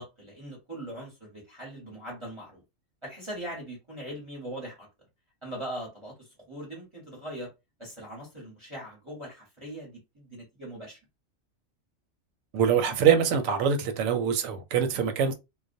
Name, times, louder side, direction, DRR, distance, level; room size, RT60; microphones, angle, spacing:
voice 1, 0.0-2.6 3.0-4.9 5.4-7.5 7.8-11.0, right 1 dB, 25° right, 1.0 m, -40 dB
voice 2, 12.5-15.3, right 7 dB, 90° right, 1.0 m, -24 dB
2.4 x 2.1 x 2.6 m
omnidirectional pair, 1.3 m